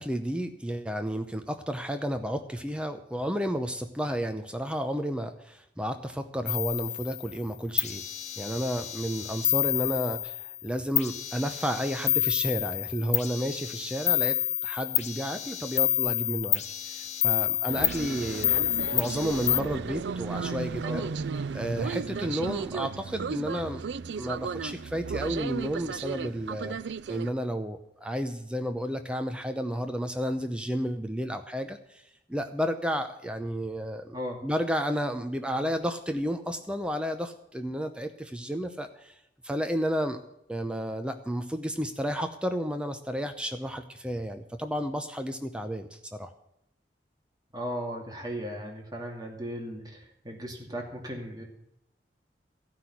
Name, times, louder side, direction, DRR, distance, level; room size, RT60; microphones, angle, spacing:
voice 1, 0.0-8.0 8.4-21.1 21.5-23.8 24.1-26.8 27.1-32.0 32.3-34.2 34.4-39.2 39.4-40.2 40.5-46.3, equal, 5° right, 7 dB, 0.7 m, -32 dB
sound 1, 6.5-7.3 7.8-10.6 11.0-19.6, left 12 dB, 40° left, 0.7 m, -29 dB
sound 2, 17.7-27.3, right 5 dB, 75° right, 0.4 m, -34 dB
voice 2, 20.4-21.1 34.1-34.4 47.5-51.4, equal, 25° right, 0 dB, 2.6 m, -37 dB
15.0 x 6.1 x 9.7 m, 0.79 s
head